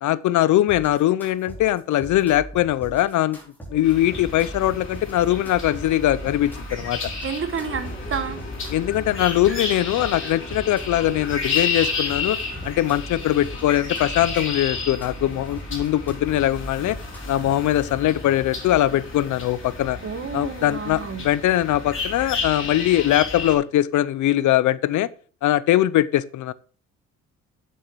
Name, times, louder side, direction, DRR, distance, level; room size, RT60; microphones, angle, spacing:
voice 1, 0.0-3.4 3.7-7.0 8.7-12.4 12.6-17.0 17.3-20.0 20.3-25.1 25.4-26.5, left 13 dB, 75° left, 0.6 m, -21 dB
sound 1, 0.7-17.7, right 1 dB, 5° left, 4.5 m, -40 dB
sound 2, 3.8-23.6, left 4 dB, 40° left, 4.2 m, -32 dB
voice 2, 7.2-8.4 20.0-21.3, right 6 dB, 45° right, 1.4 m, -30 dB
sound 3, 7.5-13.4, left 3 dB, 25° left, 1.8 m, -40 dB
9.2 x 7.4 x 4.6 m
cardioid pair, 90°, 30 cm